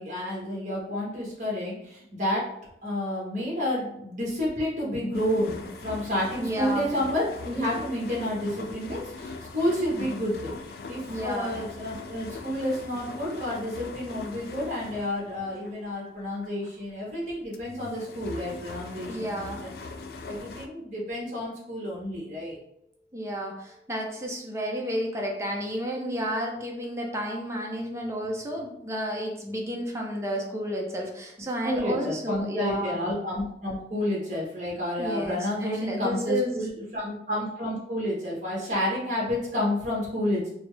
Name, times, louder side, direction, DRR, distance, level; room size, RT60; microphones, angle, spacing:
voice 1, 0.0-2.5 2.8-10.5 10.9-19.7 20.2-22.6 31.6-40.5, left 1 dB, 40° right, -5 dB, 1.3 m, -30 dB
sound 1, 5.1-17.1 17.4-20.7, left 3 dB, 55° left, 0.3 m, -41 dB
voice 2, 6.4-6.9 11.1-11.5 19.1-19.6 23.1-33.0 35.0-36.6, equal, 15° right, 0 dB, 0.5 m, -31 dB
4.3 x 2.0 x 3.2 m, 0.77 s
head